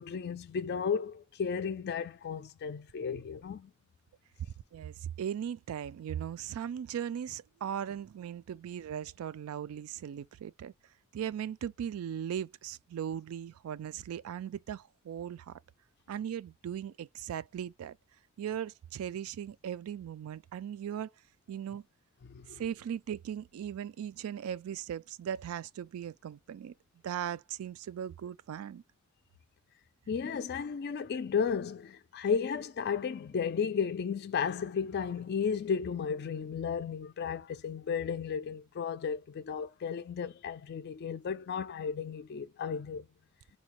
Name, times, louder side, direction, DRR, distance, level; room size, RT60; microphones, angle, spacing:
voice 1, 0.0-3.7 22.2-22.6 30.1-43.1, left 6 dB, 50° left, 0.3 m, -34 dB
voice 2, 4.7-10.7 11.1-15.5 16.1-18.0 18.4-21.1 21.5-21.8 22.5-26.7 27.0-28.8, right 9 dB, 85° right, 0.3 m, -38 dB
4.1 x 2.2 x 2.9 m
head